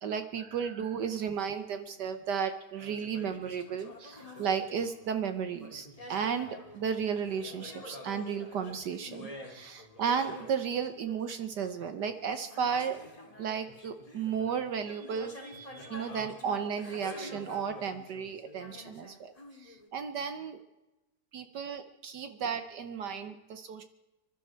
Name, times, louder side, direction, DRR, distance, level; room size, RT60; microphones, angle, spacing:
voice 1, 0.0-13.0 13.4-19.3 19.6-20.6 21.3-23.8, right 7 dB, 65° right, 9 dB, 1.5 m, -34 dB
sound 1, 1.3-2.2 2.8-5.2 5.5-19.9, left 1 dB, 20° left, 2.1 m, -48 dB
26.5 x 12.0 x 4.5 m, 1.0 s
omnidirectional pair, 2.0 m